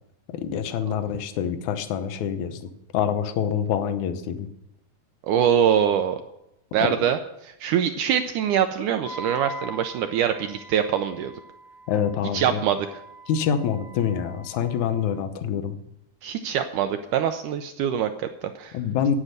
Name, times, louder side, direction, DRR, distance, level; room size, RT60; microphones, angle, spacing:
voice 1, 0.3-4.5 6.8-7.1 11.9-12.6 13.3-15.8 18.7-19.2, left 8 dB, 70° left, 10 dB, 2.0 m, -26 dB
voice 2, 5.3-6.2 6.7-11.3 12.3-12.9 16.2-18.8, right 9 dB, 80° right, 7 dB, 1.9 m, -24 dB
Wind instrument woodwind instrument, 9.0-15.1, right 1 dB, 50° left, 2.5 m, -42 dB
9.8 x 9.0 x 6.5 m, 0.84 s
omnidirectional pair, 4.1 m